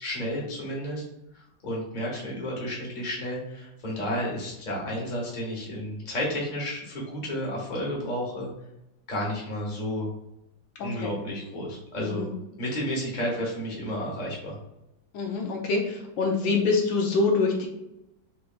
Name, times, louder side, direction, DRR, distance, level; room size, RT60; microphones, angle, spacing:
voice 1, 0.0-1.0 1.3-8.5 9.1-10.1 10.8-12.3 12.6-14.6, equal, 25° left, -3 dB, 1.2 m, -32 dB
voice 2, 10.8-11.1 12.0-12.3 15.1-17.7, left 3 dB, 75° left, 1 dB, 1.5 m, -25 dB
5.9 x 3.9 x 2.3 m, 0.90 s
omnidirectional pair, 2.1 m